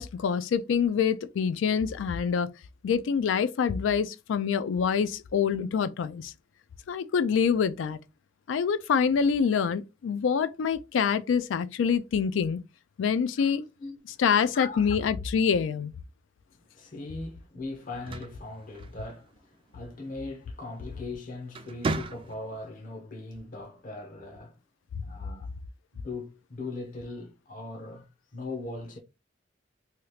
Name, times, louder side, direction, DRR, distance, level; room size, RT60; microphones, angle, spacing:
voice 1, 0.0-2.5 2.8-6.3 6.9-8.0 8.5-12.6 13.0-13.6 14.2-15.9, left 6 dB, 85° left, 0.3 m, -26 dB
voice 2, 13.8-14.2 14.5-14.9 16.6-24.6 25.0-25.5 25.9-28.1 28.3-29.0, left 2 dB, 45° left, 0.7 m, -40 dB
sound 1, 17.8-19.4 20.8-21.1 21.5-22.7, right 3 dB, 30° right, 0.3 m, -35 dB
2.8 x 2.4 x 3.1 m
head